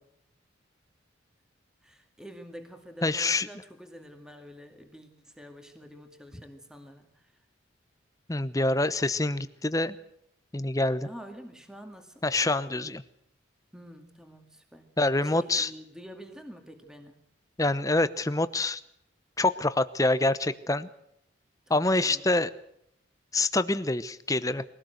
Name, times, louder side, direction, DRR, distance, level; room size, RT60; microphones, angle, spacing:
voice 1, 1.8-7.4 11.0-12.2 13.7-14.9 15.2-17.2 21.7-22.3, equal, 5° right, 5 dB, 2.2 m, -47 dB
voice 2, 3.0-3.5 8.3-10.0 10.5-11.1 12.2-13.0 15.0-15.7 17.6-18.8 19.4-20.9 21.7-22.5 23.3-24.6, left 2 dB, 15° left, 13 dB, 0.9 m, -26 dB
23.0 x 17.5 x 8.0 m, 0.77 s
head